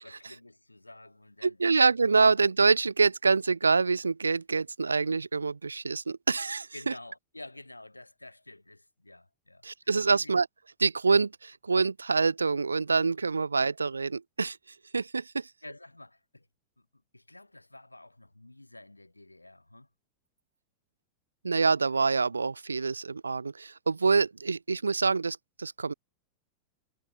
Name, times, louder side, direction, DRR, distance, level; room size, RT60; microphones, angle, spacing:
voice 1, 0.0-1.8 6.7-10.4 15.6-16.5 16.8-16.9 17.1-19.9, left 2 dB, 85° left, 7.0 m, -50 dB
voice 2, 1.4-6.9 9.6-10.5 10.8-14.6 14.9-15.5 21.4-25.9, right 4 dB, 75° right, 0.6 m, -26 dB
figure-of-eight pair, 90°, 0 cm